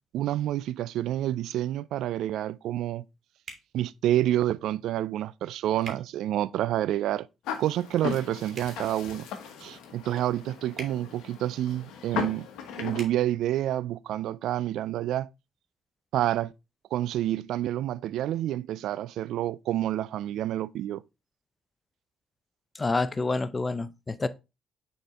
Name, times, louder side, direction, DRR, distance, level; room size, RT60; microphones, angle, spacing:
voice 1, 0.1-3.0 3.7-7.3 7.6-9.3 9.6-12.5 12.8-15.3 16.1-16.5 16.9-21.0, right 13 dB, 70° right, 0.3 m, -28 dB
sound 1, 3.4-3.7 5.8-6.0 8.5-8.7 10.7-10.9 12.9-13.1, right 3 dB, 50° right, 2.4 m, -41 dB
sound 2, 7.5-13.0, left 7 dB, 75° left, 1.2 m, -37 dB
voice 2, 22.7-24.3, left 3 dB, 30° left, 0.7 m, -28 dB
6.6 x 4.3 x 3.5 m
hypercardioid pair, 50°, 0 cm